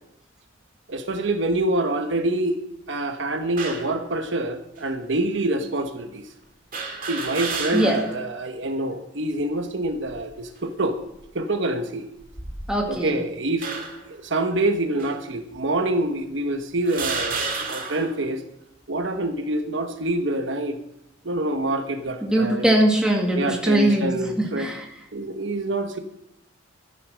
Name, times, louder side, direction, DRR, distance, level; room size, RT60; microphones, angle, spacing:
voice 1, 0.9-2.6 2.9-6.2 7.1-11.0 11.3-12.1 12.9-13.7 14.0-18.4 18.9-20.8 21.2-22.7 23.3-24.7 25.1-26.0, right 1 dB, 65° right, 7 dB, 1.2 m, -26 dB
sound 1, 3.6-4.0 4.8-4.9 6.7-8.2 8.6-8.7 9.8-10.3 11.0-11.2 12.2-13.0 13.6-14.1 15.0-15.1 16.0-16.1 16.8-18.2, right 4 dB, 45° right, 2.4 m, -31 dB
voice 2, 12.7-13.2 22.2-24.1 24.4-24.8, right 1 dB, 5° right, -1 dB, 2.1 m, -21 dB
14.0 x 9.9 x 6.3 m, 0.80 s
head